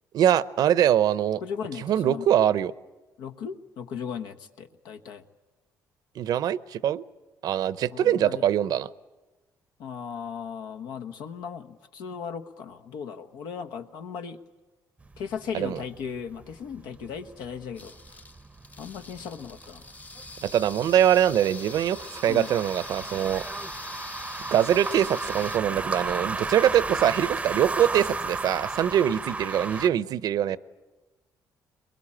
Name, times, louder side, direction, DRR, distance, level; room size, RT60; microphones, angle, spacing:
voice 1, 0.1-1.4 1.8-2.7 6.2-7.0 7.4-8.9 15.5-15.8 20.4-23.4 24.5-30.6, right 10 dB, 65° right, 17 dB, 0.7 m, -23 dB
voice 2, 1.4-2.3 3.2-5.2 7.9-8.4 9.8-14.4 15.2-18.0 18.8-19.9 22.3-22.5, left 7 dB, 85° left, 7 dB, 1.2 m, -37 dB
sound 1, 15.0-29.9, right 3 dB, 15° right, 0.7 m, -35 dB
sound 2, 17.8-25.6, left 3 dB, 20° left, 0.7 m, -43 dB
22.5 x 21.5 x 8.7 m, 1.1 s
cardioid pair, 110°, 7 cm